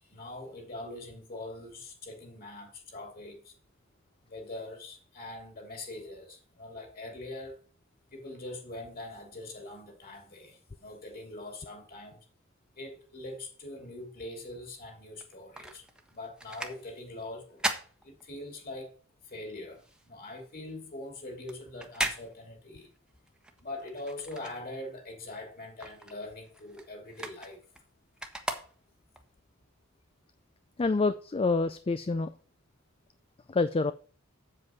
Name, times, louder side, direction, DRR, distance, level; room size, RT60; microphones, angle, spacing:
voice 1, 0.0-3.5 4.2-7.6 8.1-12.3 12.7-17.7 18.0-18.9 19.2-22.9 23.6-27.6, left 2 dB, 45° left, 3.0 m, -43 dB
sound 1, 15.1-18.8 19.2-25.1 25.4-29.2 29.8-29.9, right 1 dB, 5° right, 1.1 m, -39 dB
voice 2, 30.8-32.3 33.5-33.9, left 3 dB, 25° left, 0.4 m, -27 dB
7.8 x 7.5 x 4.5 m
head